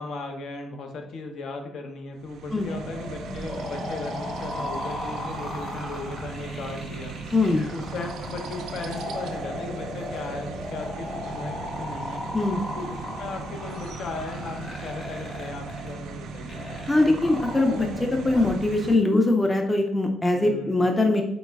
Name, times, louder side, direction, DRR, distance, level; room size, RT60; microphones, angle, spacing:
voice 1, 0.0-7.2 7.6-12.3 12.8-16.7 20.3-20.9, left 3 dB, 70° left, 4 dB, 0.6 m, -37 dB
sound 1, 2.2-19.0, right 4 dB, 85° right, 0.3 m, -38 dB
sound 2, 2.6-18.6, left 1 dB, 35° left, 1.1 m, -36 dB
voice 2, 7.3-7.6 12.3-12.6 16.9-21.2, left 2 dB, 15° left, 3 dB, 0.4 m, -22 dB
3.9 x 2.1 x 3.3 m, 0.86 s
cardioid pair, 110°, 0 cm